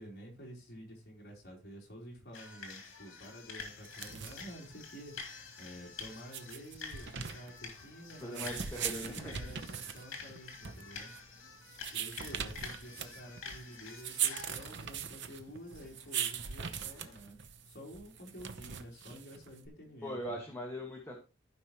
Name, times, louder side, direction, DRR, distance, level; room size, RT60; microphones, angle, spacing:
voice 1, 0.0-11.1 11.9-17.4 17.7-20.4, equal, 50° left, -1 dB, 3.6 m, -50 dB
sound 1, 2.3-17.2, left 5 dB, 75° left, 2.8 m, -49 dB
sound 2, 3.8-19.7, right 8 dB, 60° right, 0.8 m, -41 dB
voice 2, 8.2-9.4 20.0-21.2, equal, 10° left, 0 dB, 1.6 m, -40 dB
15.5 x 5.4 x 3.0 m, 0.31 s
head